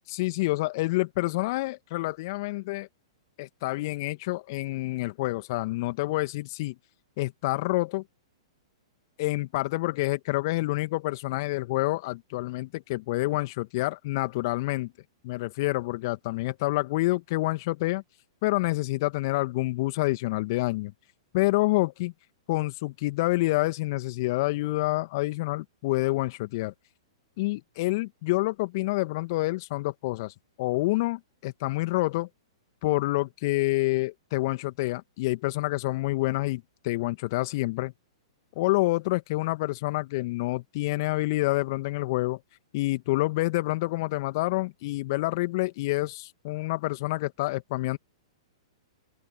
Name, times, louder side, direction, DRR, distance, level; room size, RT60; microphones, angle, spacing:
voice 1, 0.1-2.9 3.4-6.7 7.2-8.0 9.2-14.9 15.2-18.0 18.4-20.9 21.3-22.1 22.5-26.7 27.4-32.3 32.8-37.9 38.6-42.4 42.7-48.0, left 20 dB, 50° left, 2.0 m, -28 dB
open air
figure-of-eight pair, 110°, 3 cm